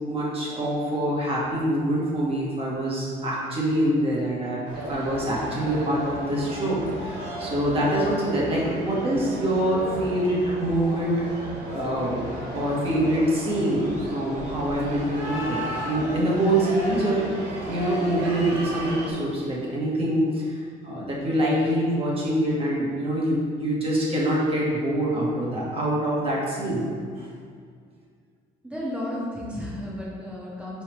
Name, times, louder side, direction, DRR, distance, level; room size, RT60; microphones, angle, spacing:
voice 1, 0.0-4.6 4.9-12.2 12.5-17.3 17.7-26.9 27.2-27.3, right 1 dB, 35° right, -5 dB, 1.2 m, -25 dB
sound 1, 4.7-19.1, right 1 dB, 80° right, 1.4 m, -34 dB
voice 2, 28.6-30.8, left 1 dB, 5° right, -6 dB, 1.1 m, -33 dB
4.7 x 3.2 x 3.2 m, 2.1 s
cardioid pair, 110°, 17 cm